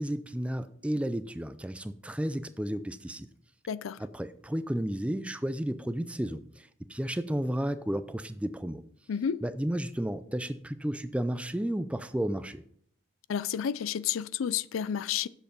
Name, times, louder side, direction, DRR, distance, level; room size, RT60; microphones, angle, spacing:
voice 1, 0.0-3.3 4.0-8.8 9.4-12.6, right 1 dB, 5° right, 0.4 m, -32 dB
voice 2, 3.7-4.0 9.1-9.4 13.3-15.3, left 8 dB, 85° left, 0.4 m, -31 dB
7.9 x 6.6 x 5.3 m
head